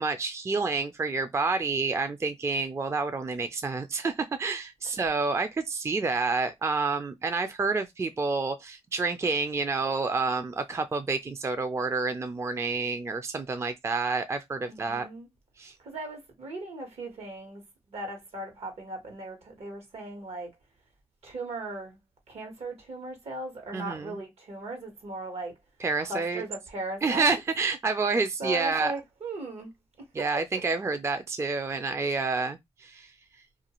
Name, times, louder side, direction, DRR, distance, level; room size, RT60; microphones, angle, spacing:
voice 1, 0.0-15.1 15.6-15.7 23.7-24.2 25.8-26.4 27.0-28.9 30.1-33.1, right 4 dB, 25° right, 0.3 m, -29 dB
voice 2, 14.7-15.3 15.8-17.6 17.9-20.5 21.2-22.0 22.3-25.5 26.1-27.4 28.4-29.7, right 2 dB, 75° right, 1.1 m, -38 dB
2.5 x 2.3 x 2.9 m
cardioid pair, 75°, 11 cm